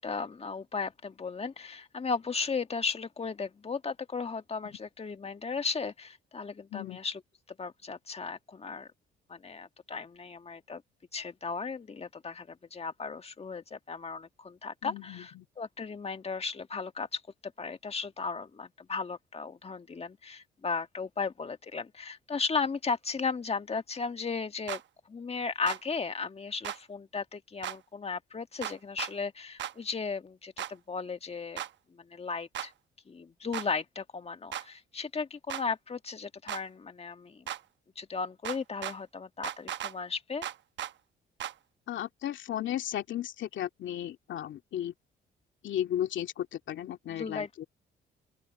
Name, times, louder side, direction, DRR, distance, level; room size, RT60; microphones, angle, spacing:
voice 1, 0.0-7.2 7.6-8.9 9.3-10.8 11.1-15.3 15.6-24.8 25.1-31.6 31.9-32.7 33.1-37.4 37.9-40.5 47.1-47.6, left 5 dB, 30° left, 1.6 m, -36 dB
voice 2, 14.8-15.5 41.9-44.9 45.6-47.7, left 11 dB, 70° left, 2.5 m, -35 dB
sound 1, 24.7-24.8 25.7-25.8 26.6-26.8 27.6-27.8 28.6-29.1 29.6-29.7 30.6-30.7 31.6-31.7 32.5-32.7 33.5-33.7 34.5-34.7 35.5-35.6 36.5-36.6 37.5-37.6 38.4-39.0 39.4-39.9 40.4-40.9 41.4-41.5, right 10 dB, 65° right, 1.0 m, -36 dB
open air
cardioid pair, 90°, 20 cm